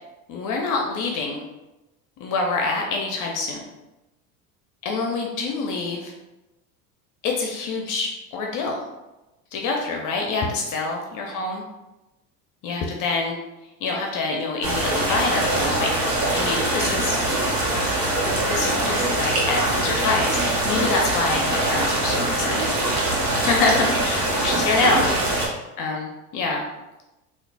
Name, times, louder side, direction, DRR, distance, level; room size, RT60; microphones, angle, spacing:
voice 1, 0.3-1.4 2.2-3.6 4.8-6.1 7.2-8.9 9.5-11.6 12.6-13.4 13.8-15.9 16.3-17.2 18.4-22.7 23.2-25.4 25.8-26.7, left 3 dB, 45° left, 1 dB, 0.6 m, -26 dB
sound 1, 14.6-25.5, right 1 dB, 85° right, 1.0 m, -23 dB
3.8 x 2.4 x 2.2 m, 1.0 s
hypercardioid pair, 90°, 44 cm